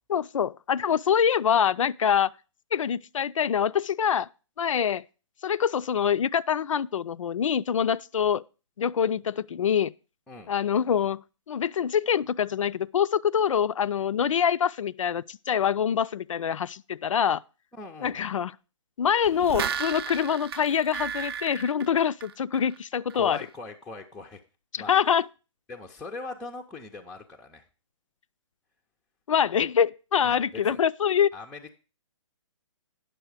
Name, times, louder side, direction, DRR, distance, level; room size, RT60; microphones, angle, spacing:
voice 1, 0.1-2.3 2.7-4.3 4.6-5.0 5.4-8.4 8.8-9.9 10.5-11.2 11.5-17.4 18.0-18.5 19.0-23.4 24.7-25.3 29.3-31.3, left 8 dB, 80° left, 0.4 m, -25 dB
voice 2, 17.7-18.3 23.1-24.4 24.8-24.9 25.7-27.7 30.2-30.8 31.3-31.8, left 3 dB, 5° left, 0.4 m, -41 dB
sound 1, 19.2-22.8 23.1-23.2, right 8 dB, 50° right, 0.6 m, -34 dB
9.1 x 6.5 x 4.7 m
hypercardioid pair, 145°, 16 cm